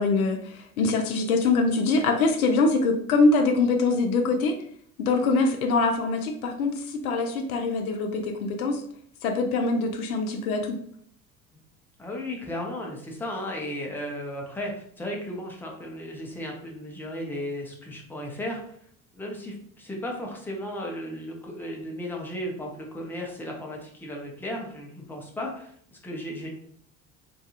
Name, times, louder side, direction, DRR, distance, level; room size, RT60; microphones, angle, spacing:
voice 1, 0.0-4.5 5.0-8.8 9.2-10.8, left 3 dB, 75° left, 5 dB, 0.5 m, -24 dB
voice 2, 12.0-18.8 19.1-26.5, left 1 dB, 5° left, -1 dB, 0.6 m, -35 dB
2.7 x 2.3 x 2.7 m, 0.63 s
figure-of-eight pair, 65°, 43 cm